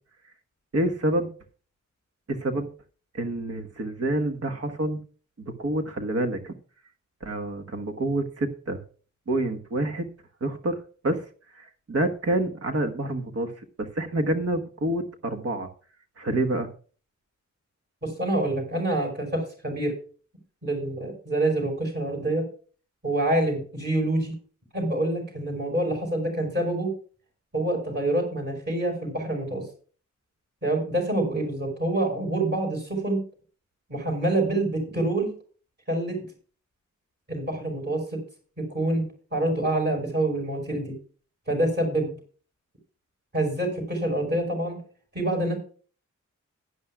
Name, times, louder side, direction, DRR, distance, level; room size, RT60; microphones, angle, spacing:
voice 1, 0.7-1.3 2.3-2.7 3.1-5.0 5.6-6.5 7.2-8.8 9.3-10.1 10.4-10.8 11.0-11.3 11.5-15.7 16.2-16.7, right 1 dB, 50° right, 6 dB, 1.3 m, -27 dB
voice 2, 18.0-20.0 20.6-22.4 23.0-24.3 24.7-26.9 27.5-29.6 30.6-33.2 33.9-35.3 35.9-36.2 37.3-38.2 38.6-40.9 41.5-42.1 43.3-44.8 45.1-45.6, right 1 dB, 35° right, 2 dB, 5.1 m, -26 dB
16.0 x 11.5 x 2.3 m, 0.39 s
wide cardioid pair, 170°, 30 cm